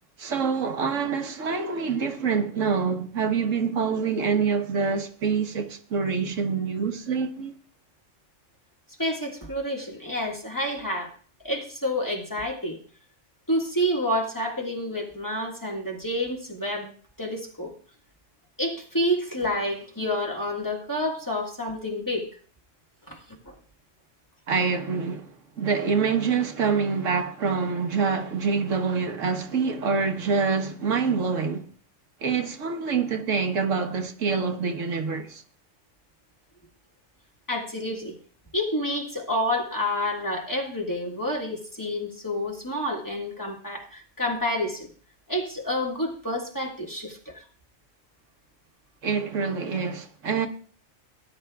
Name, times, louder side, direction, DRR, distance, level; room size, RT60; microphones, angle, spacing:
voice 1, 0.2-7.5 24.5-31.7 32.2-35.4 49.0-50.5, right 5 dB, 75° right, 1.4 m, -26 dB
voice 2, 9.0-11.1 11.4-12.8 13.5-16.9 17.2-17.7 18.6-22.4 23.1-23.5 37.5-38.1 38.5-44.9 45.3-47.4, left 1 dB, 15° left, 1.7 m, -29 dB
18.0 x 10.5 x 2.3 m
omnidirectional pair, 1.3 m